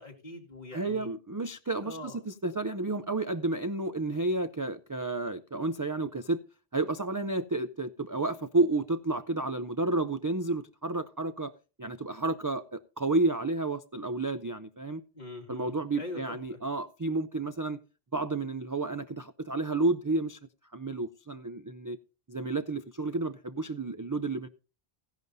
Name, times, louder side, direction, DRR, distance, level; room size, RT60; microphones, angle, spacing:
voice 1, 0.0-1.1 1.8-2.2 4.0-4.1 15.1-16.6, left 2 dB, 45° left, 2.5 m, -43 dB
voice 2, 0.7-6.4 6.7-11.5 11.8-15.0 15.5-17.8 18.1-20.4 20.7-22.0 22.3-24.5, right 2 dB, 30° right, 0.3 m, -31 dB
15.5 x 10.5 x 2.7 m
omnidirectional pair, 1.1 m